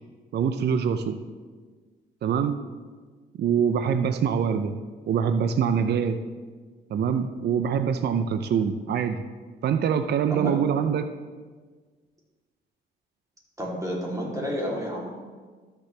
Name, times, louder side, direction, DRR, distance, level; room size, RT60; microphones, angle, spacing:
voice 1, 0.3-1.2 2.2-2.6 3.4-4.7 5.1-6.2 6.9-9.2 9.6-11.1, right 7 dB, 55° right, 9 dB, 0.6 m, -24 dB
voice 2, 13.6-15.1, equal, 15° right, -4 dB, 3.1 m, -30 dB
13.0 x 6.8 x 3.3 m, 1.5 s
cardioid pair, 90°, 20 cm